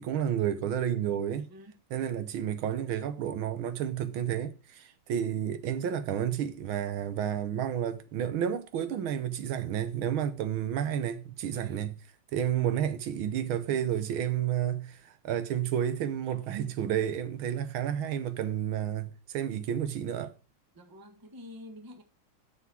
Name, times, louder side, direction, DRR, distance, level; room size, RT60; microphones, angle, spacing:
voice 1, 0.0-1.5 1.9-11.9 12.3-20.3, right 9 dB, 75° right, 1.6 m, -31 dB
voice 2, 11.5-11.9 20.7-22.0, left 1 dB, 15° right, 1.0 m, -48 dB
6.9 x 6.9 x 6.1 m
omnidirectional pair, 2.2 m